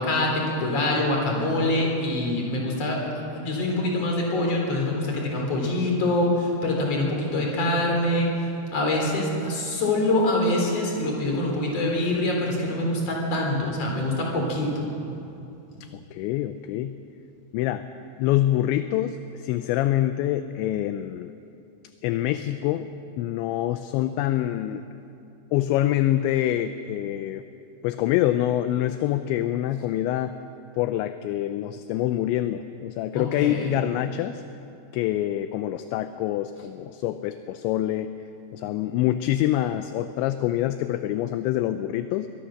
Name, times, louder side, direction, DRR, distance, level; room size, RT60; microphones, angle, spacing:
voice 1, 0.0-3.0 3.3-8.3 8.7-14.7 33.1-33.8, left 1 dB, 35° left, 0 dB, 4.4 m, -25 dB
voice 2, 15.9-16.9 17.5-17.9 18.2-21.3 22.0-22.9 23.2-24.9 25.5-27.4 27.8-30.3 30.8-34.4 34.9-38.1 38.5-42.3, left 13 dB, 80° left, 10 dB, 2.7 m, -25 dB
23.0 x 18.0 x 6.6 m, 2.7 s
omnidirectional pair, 5.6 m